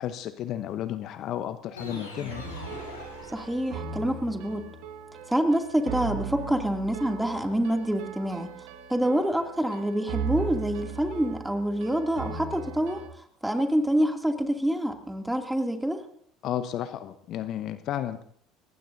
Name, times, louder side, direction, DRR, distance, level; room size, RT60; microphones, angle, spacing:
voice 1, 0.0-2.5 16.4-18.2, left 11 dB, 50° left, 12 dB, 0.9 m, -33 dB
sound 1, 1.8-4.1, left 2 dB, 85° left, 4.9 m, -41 dB
sound 2, 2.3-13.1, right 6 dB, 60° right, 1.7 m, -38 dB
voice 2, 3.3-4.6 5.3-8.5 8.9-13.0 13.4-16.0, equal, 5° right, 4 dB, 2.6 m, -26 dB
25.0 x 19.0 x 2.7 m, 0.62 s
figure-of-eight pair, 65°, 0 cm